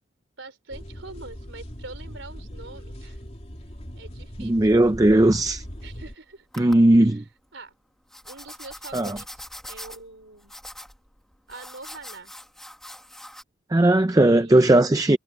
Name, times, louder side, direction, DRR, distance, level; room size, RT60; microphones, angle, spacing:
voice 1, 0.4-3.2 3.9-4.8 5.8-6.5 7.1-7.3 7.5-7.7 8.2-10.5 11.5-12.3 14.4-14.7, right 3 dB, 65° right, 4.0 m, -44 dB
sound 1, 0.7-6.1, equal, 30° left, 3.2 m, -40 dB
voice 2, 4.4-5.6 6.6-7.2 8.9-9.2 13.7-15.2, right 1 dB, 15° right, 0.4 m, -17 dB
sound 2, 5.0-6.1 6.5-7.0 8.1-13.4, left 1 dB, ahead, 1.5 m, -43 dB
head